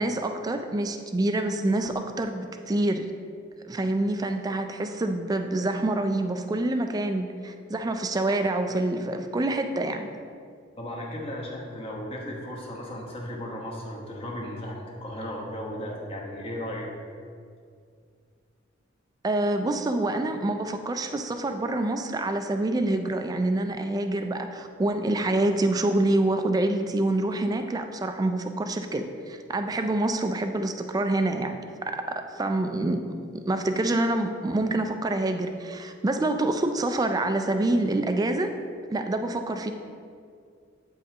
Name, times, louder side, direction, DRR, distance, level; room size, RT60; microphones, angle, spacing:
voice 1, 0.0-3.1 3.6-10.1 19.2-32.0 32.4-38.5 38.9-39.7, right 2 dB, 20° right, 7 dB, 0.3 m, -26 dB
voice 2, 10.8-16.9, left 1 dB, 30° left, -2 dB, 1.1 m, -35 dB
8.4 x 5.3 x 2.9 m, 2.3 s
head